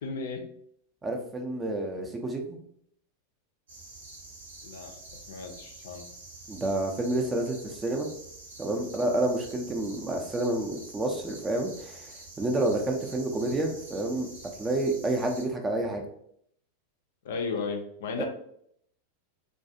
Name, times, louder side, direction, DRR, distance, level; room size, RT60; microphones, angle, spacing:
voice 1, 0.0-0.4 4.6-5.0 5.3-6.1 17.2-18.3, left 4 dB, 60° left, 4 dB, 0.4 m, -34 dB
voice 2, 1.0-2.6 6.5-8.1 8.6-14.3 14.6-16.1 18.2-18.3, right 2 dB, 15° right, 2 dB, 0.5 m, -29 dB
sound 1, 3.7-15.4, right 2 dB, 65° right, 0.7 m, -47 dB
2.3 x 2.3 x 2.7 m, 0.68 s
figure-of-eight pair, 90°, 0 cm